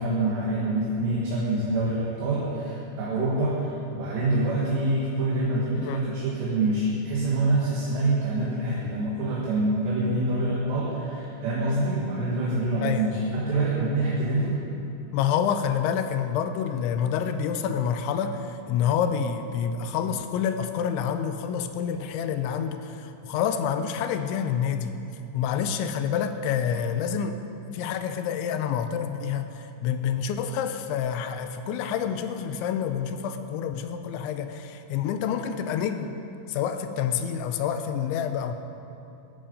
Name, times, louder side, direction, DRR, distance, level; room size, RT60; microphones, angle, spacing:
voice 1, 0.0-14.6, right 2 dB, 70° right, -6 dB, 3.9 m, -26 dB
voice 2, 15.1-24.9 25.3-27.4 27.7-36.1 36.5-38.6, left 8 dB, 90° left, 8 dB, 3.1 m, -28 dB
15.5 x 13.0 x 5.4 m, 2.8 s
omnidirectional pair, 5.2 m